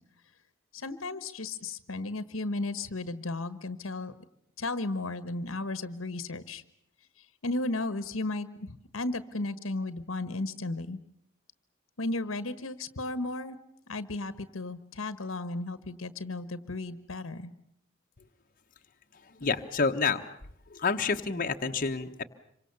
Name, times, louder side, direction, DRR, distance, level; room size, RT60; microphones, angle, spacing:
voice 1, 0.7-4.1 4.6-6.6 7.4-11.0 12.0-13.6 13.9-17.5, left 2 dB, 85° left, 14 dB, 1.3 m, -34 dB
voice 2, 19.2-20.2 20.7-22.2, left 4 dB, 45° left, 4 dB, 1.2 m, -29 dB
27.0 x 24.5 x 7.0 m, 0.73 s
head